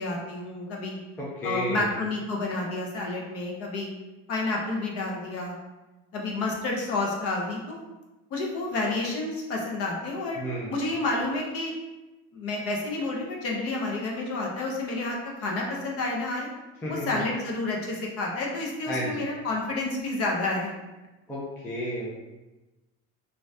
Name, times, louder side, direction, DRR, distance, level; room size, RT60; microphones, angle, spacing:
voice 1, 0.0-1.0 1.4-3.9 4.3-5.6 6.1-7.8 8.3-10.4 10.7-11.7 12.3-16.5 16.9-20.7, left 2 dB, 45° left, -1 dB, 0.6 m, -30 dB
voice 2, 1.2-1.9 10.4-10.8 16.8-17.1 18.9-19.3 21.3-22.1, equal, 10° left, -6 dB, 0.3 m, -31 dB
2.6 x 2.2 x 3.2 m, 1.1 s
cardioid pair, 160°, 33 cm